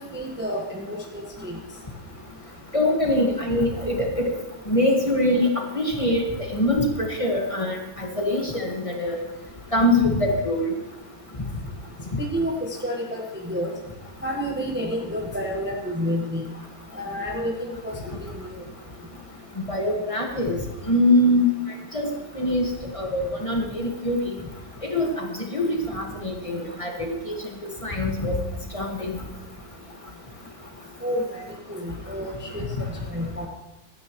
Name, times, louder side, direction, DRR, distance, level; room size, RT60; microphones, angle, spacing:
voice 1, 0.0-1.6 12.3-13.7 14.2-16.4 16.9-17.9 18.2-18.3 31.0-31.4 31.7-32.7 33.1-33.5, equal, 10° right, -1 dB, 1.1 m, -29 dB
voice 2, 2.7-4.3 4.7-5.5 5.7-9.1 9.7-10.7 19.7-20.6 20.9-21.5 21.9-22.1 22.4-22.7 22.9-24.2 24.9-26.9 27.3-27.4 27.6-28.4 28.7-29.2, left 1 dB, 20° left, 0 dB, 1.7 m, -23 dB
16.0 x 12.5 x 3.1 m, 1.0 s
omnidirectional pair, 1.6 m